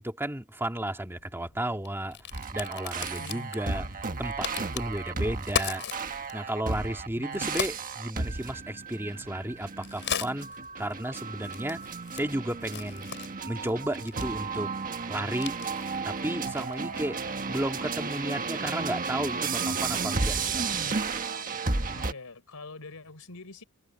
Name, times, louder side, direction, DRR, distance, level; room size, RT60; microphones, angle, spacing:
voice 1, 0.0-2.2 2.5-3.9 4.2-5.8 6.3-10.5 10.8-11.8 12.1-13.1 13.5-14.7 15.1-15.6 16.0-20.7, right 1 dB, 10° right, 1.8 m, -33 dB
Crack, 1.1-17.2, left 7 dB, 55° left, 7.1 m, -40 dB
sound 1, 2.3-22.1, right 4 dB, 40° right, 1.4 m, -33 dB
voice 2, 3.2-3.8 5.1-5.4 7.2-7.5 17.2-17.5 21.8-23.6, left 2 dB, 80° left, 3.7 m, -45 dB
head